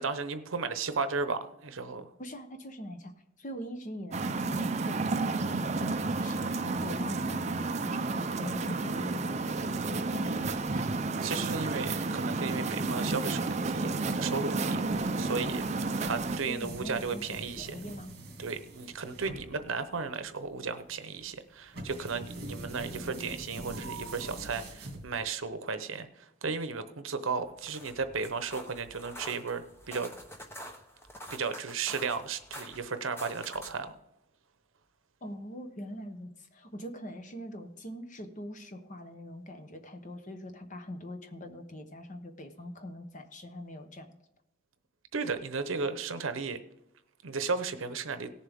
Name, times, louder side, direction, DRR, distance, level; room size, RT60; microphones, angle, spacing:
voice 1, 0.0-2.1 11.2-14.8 15.1-17.7 18.4-30.1 31.3-33.9 45.1-46.6 47.2-48.3, right 4 dB, 75° right, 10 dB, 0.8 m, -34 dB
voice 2, 2.2-3.1 3.4-10.9 16.5-18.1 35.2-44.2, equal, 35° left, 7 dB, 1.0 m, -42 dB
sound 1, 4.1-16.4, right 3 dB, 35° right, 0.5 m, -31 dB
sound 2, 14.9-25.5, right 2 dB, 50° right, 2.5 m, -44 dB
sound 3, 27.5-33.9, equal, 10° left, 0.9 m, -47 dB
17.5 x 7.2 x 3.6 m, 0.86 s
head